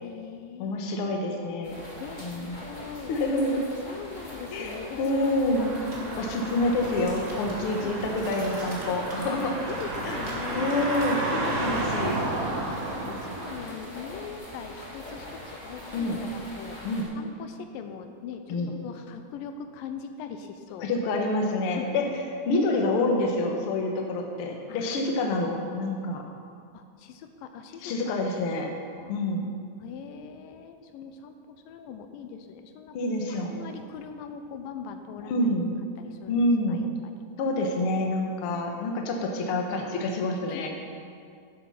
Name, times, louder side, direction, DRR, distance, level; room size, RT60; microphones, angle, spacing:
voice 1, 0.0-1.2 2.0-3.4 3.9-5.0 5.6-6.1 7.6-8.5 9.3-9.4 9.7-10.8 12.2-12.8 13.0-16.8 17.2-18.4 18.8-20.9 21.7-22.1 24.7-25.2 26.7-27.9 28.9-29.1 29.8-33.0 33.3-35.5 36.0-36.9 40.5-40.7, left 7 dB, 90° left, 7 dB, 2.4 m, -42 dB
voice 2, 0.6-1.7 2.2-2.6 3.1-3.7 4.5-5.7 6.2-9.5 10.0-10.2 10.5-12.2 13.0-13.2 15.9-16.2 16.8-17.1 18.5-18.7 20.8-22.0 22.5-26.2 27.8-28.7 29.1-29.4 32.9-33.7 35.3-35.7 36.3-36.9 37.4-40.7, left 2 dB, 60° left, 1 dB, 1.6 m, -27 dB
sound 1, 1.6-17.0, left 1 dB, 20° left, 1.3 m, -42 dB
sound 2, 5.5-13.5, right 2 dB, 80° right, 3.5 m, -32 dB
sound 3, 5.9-6.1 6.5-11.1, right 1 dB, 35° right, 0.7 m, -46 dB
10.5 x 7.7 x 5.8 m, 2.2 s
omnidirectional pair, 3.9 m